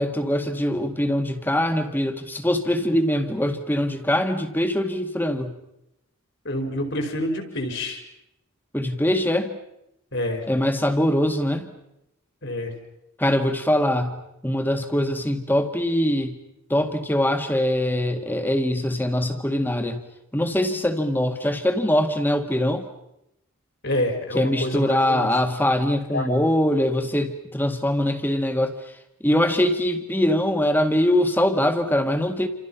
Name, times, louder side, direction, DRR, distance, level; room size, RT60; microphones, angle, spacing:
voice 1, 0.0-5.5 8.7-9.6 10.5-11.7 13.2-14.2 14.4-16.4 16.7-20.0 20.3-22.9 24.3-28.7 29.2-32.5, left 1 dB, 10° left, 7 dB, 2.0 m, -22 dB
voice 2, 6.4-8.0 10.1-10.4 12.4-12.7 23.8-25.4 26.1-26.5, left 1 dB, 55° left, 5 dB, 5.0 m, -27 dB
29.0 x 27.5 x 5.8 m, 0.85 s
head